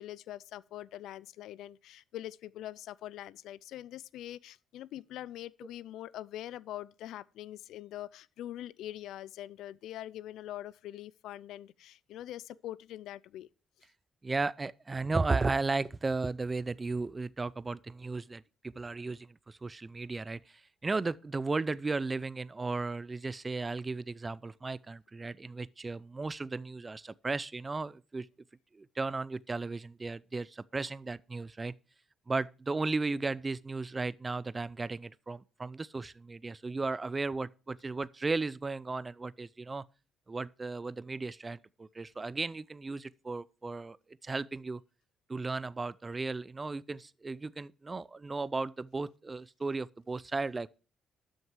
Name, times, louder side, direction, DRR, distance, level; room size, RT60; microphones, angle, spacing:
voice 1, 0.0-13.5, left 13 dB, 85° left, 0.4 m, -43 dB
voice 2, 14.2-28.3 28.7-31.7 32.3-39.8 40.3-44.0 44.2-44.8 45.3-50.7, right 3 dB, 25° right, 0.5 m, -35 dB
12.5 x 6.5 x 4.6 m
cardioid pair, 90°, 0 cm